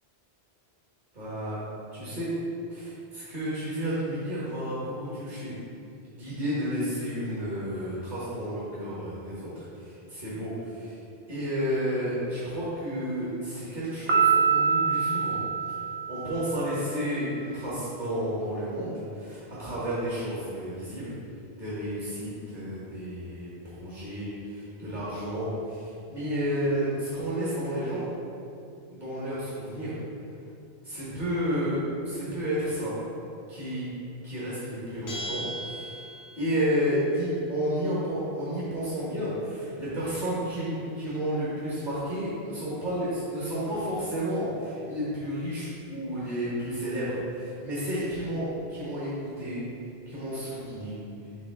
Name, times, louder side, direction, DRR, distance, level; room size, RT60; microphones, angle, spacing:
voice 1, 1.1-1.6 1.9-2.3 2.7-5.6 6.1-10.9 11.3-15.4 15.7-15.8 16.1-21.1 21.6-28.1 28.9-30.0 30.8-32.9 33.5-33.9 34.2-35.9 36.4-49.6 50.1-51.0, equal, 45° right, -10 dB, 1.7 m, -31 dB
Piano, 14.1-16.7, right 6 dB, 65° right, 0.9 m, -25 dB
Bell, 35.1-36.6, right 1 dB, 85° left, 1.3 m, -37 dB
7.2 x 3.7 x 3.6 m, 2.5 s
omnidirectional pair, 1.1 m